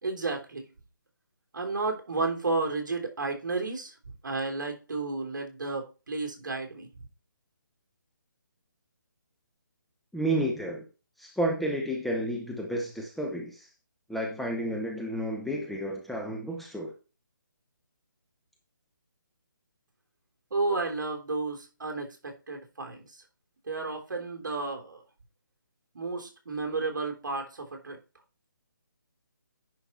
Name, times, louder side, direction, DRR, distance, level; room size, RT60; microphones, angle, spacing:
voice 1, 0.0-0.7 1.5-6.9 20.5-23.2 23.7-25.0 25.9-28.0, right 3 dB, 65° right, 3.3 m, -32 dB
voice 2, 10.1-10.9 11.2-13.7 14.1-16.9, right 1 dB, ahead, 0.7 m, -31 dB
10.5 x 5.2 x 4.2 m
hypercardioid pair, 165°, 11 cm